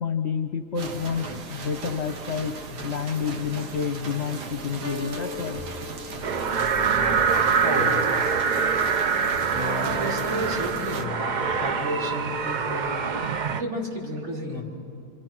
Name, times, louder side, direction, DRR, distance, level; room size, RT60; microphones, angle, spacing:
voice 1, 0.0-5.6, left 6 dB, 50° left, 6 dB, 0.9 m, -29 dB
sound 1, 0.8-11.1, right 3 dB, 90° right, 1.8 m, -37 dB
sound 2, 4.8-11.8, left 3 dB, 10° right, 0.7 m, -38 dB
sound 3, 6.2-13.6, right 6 dB, 75° right, 0.4 m, -25 dB
voice 2, 7.5-8.0 9.8-13.0 13.5-14.6, equal, 45° right, -3 dB, 4.1 m, -32 dB
27.5 x 26.5 x 6.1 m, 2.4 s
omnidirectional pair, 1.7 m